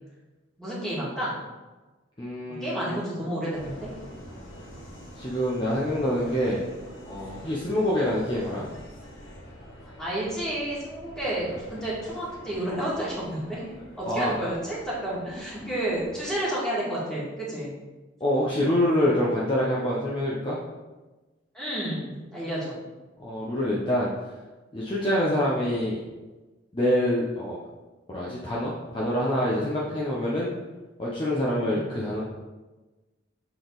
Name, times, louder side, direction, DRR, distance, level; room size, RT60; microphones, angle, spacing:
voice 1, 0.6-1.3 2.6-3.9 9.8-13.6 14.0-17.7 21.5-22.8 31.7-31.9, right 1 dB, 5° left, -8 dB, 2.0 m, -31 dB
voice 2, 2.2-3.0 5.1-6.7 7.0-8.7 14.1-14.4 18.2-20.6 23.2-24.1 24.7-26.0 26.7-27.6 28.1-30.5 31.0-32.2, left 1 dB, 25° left, -6 dB, 0.8 m, -26 dB
Subway metro underground, 3.5-16.3, equal, 80° left, 1.8 m, -46 dB
7.0 x 4.1 x 4.0 m, 1.2 s
head